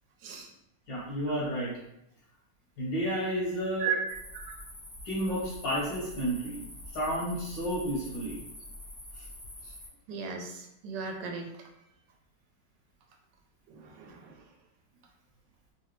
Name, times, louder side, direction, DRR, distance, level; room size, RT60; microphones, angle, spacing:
voice 1, 0.9-1.7 2.8-3.9 5.1-6.6 6.9-8.4, equal, 90° left, -6 dB, 1.8 m, -31 dB
voice 2, 3.8-4.2 4.5-4.6 10.1-11.5 13.7-14.3, right 6 dB, 75° right, 2 dB, 1.3 m, -35 dB
sound 1, 4.1-9.9, left 1 dB, 20° left, 0.4 m, -46 dB
3.9 x 2.7 x 3.1 m, 0.81 s
omnidirectional pair, 2.0 m